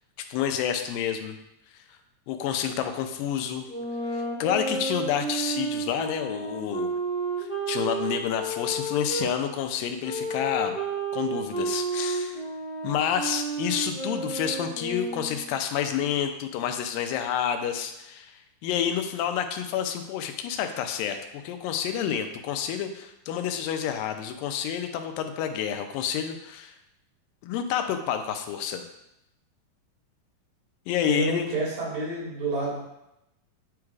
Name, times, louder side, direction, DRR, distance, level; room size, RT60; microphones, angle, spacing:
voice 1, 0.2-1.4 2.3-3.7 4.1-6.9 7.4-10.8 11.1-12.4 12.8-26.7 27.4-28.8 30.9-31.5, left 9 dB, 90° left, 7 dB, 2.3 m, -29 dB
sound 1, 3.7-9.3 10.0-15.5, right 3 dB, 20° left, 1.1 m, -31 dB
voice 2, 31.0-32.8, right 2 dB, 85° right, -6 dB, 4.0 m, -28 dB
9.4 x 4.6 x 2.4 m, 0.87 s
omnidirectional pair, 3.9 m